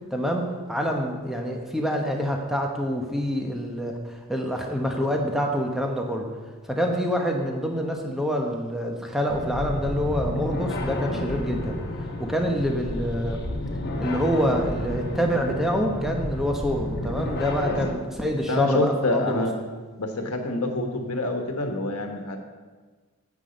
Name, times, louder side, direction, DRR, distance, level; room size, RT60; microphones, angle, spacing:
voice 1, 0.1-6.3 6.7-11.8 12.2-13.4 14.0-19.4, equal, ahead, 1 dB, 1.0 m, -26 dB
sound 1, 9.3-17.9, left 1 dB, 45° left, 1.1 m, -30 dB
voice 2, 18.5-19.5 20.0-22.4, left 2 dB, 85° left, 3 dB, 1.3 m, -27 dB
9.8 x 8.4 x 5.2 m, 1.4 s
head